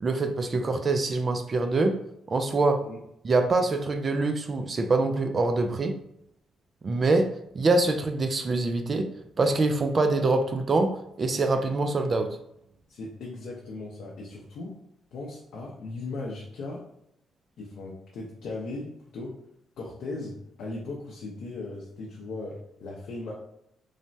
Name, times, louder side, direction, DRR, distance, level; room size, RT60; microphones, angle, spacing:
voice 1, 0.0-2.0 2.3-2.8 3.2-6.0 6.8-7.3 7.5-9.1 9.4-12.4, right 3 dB, 40° right, 6 dB, 0.3 m, -24 dB
voice 2, 12.9-14.8 15.1-16.8 17.6-19.4 19.8-23.3, left 2 dB, 70° left, -4 dB, 0.5 m, -38 dB
3.2 x 2.0 x 2.6 m, 0.76 s
cardioid pair, 90°, 0 cm